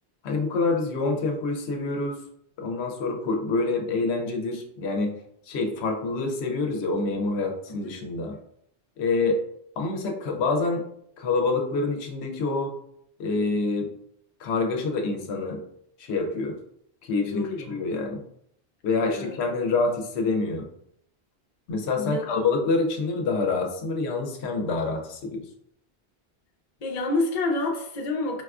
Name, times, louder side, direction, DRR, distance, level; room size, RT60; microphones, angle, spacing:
voice 1, 0.2-2.2 2.6-5.2 5.5-8.4 9.0-9.4 9.8-10.8 11.2-12.8 13.2-13.9 14.4-15.6 16.0-16.6 17.0-18.2 18.8-20.7 21.7-25.4, left 3 dB, 75° left, 3 dB, 0.8 m, -26 dB
voice 2, 17.3-17.8 19.1-19.4 22.0-22.4 26.8-28.4, left 2 dB, 45° left, 1 dB, 0.6 m, -28 dB
4.5 x 2.3 x 2.3 m, 0.71 s
omnidirectional pair, 1.1 m